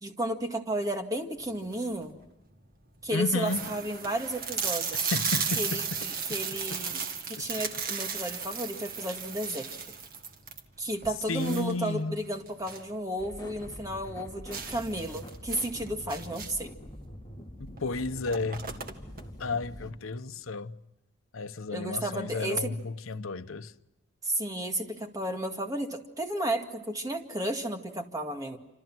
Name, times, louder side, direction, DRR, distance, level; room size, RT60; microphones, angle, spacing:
voice 1, 0.0-2.2 3.0-5.1 5.6-9.7 10.8-16.7 21.7-22.7 24.2-28.6, right 1 dB, 15° right, 2.0 m, -33 dB
sound 1, 1.5-2.0 2.6-2.7 3.0-3.1 3.4-12.9 13.3-13.4 13.7-13.8 14.5-16.7 17.7-17.8 18.1-19.2, right 6 dB, 45° right, 1.9 m, -35 dB
voice 2, 3.1-3.7 5.1-6.1 6.7-6.8 7.4-7.5 11.3-12.2 17.6-18.8 19.4-20.7 21.3-23.7, left 3 dB, 80° left, 1.0 m, -33 dB
sound 2, 13.2-19.9, equal, 20° left, 3.4 m, -45 dB
28.0 x 26.5 x 6.1 m
head